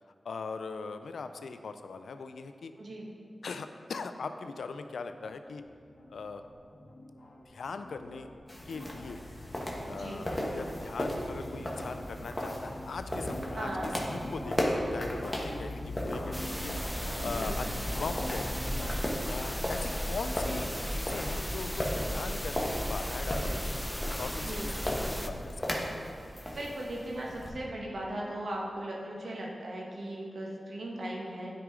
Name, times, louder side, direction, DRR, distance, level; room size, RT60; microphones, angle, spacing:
voice 1, 0.2-2.7 3.4-5.7 6.1-6.4 7.5-8.3 8.7-9.2 9.9-18.8 19.3-23.8 24.2-25.9, left 4 dB, 85° left, 9 dB, 0.3 m, -40 dB
voice 2, 2.8-3.1 9.9-10.3 13.5-13.9 17.2-17.5 24.4-24.8 26.5-31.5, right 1 dB, 75° right, -2 dB, 1.3 m, -38 dB
sound 1, 5.2-18.9, left 1 dB, 65° left, 1.1 m, -43 dB
sound 2, 8.5-27.5, equal, 20° left, 1.3 m, -37 dB
sound 3, 16.3-25.3, equal, 5° left, 0.6 m, -35 dB
9.4 x 5.0 x 3.7 m, 2.3 s
cardioid pair, 40°, 0 cm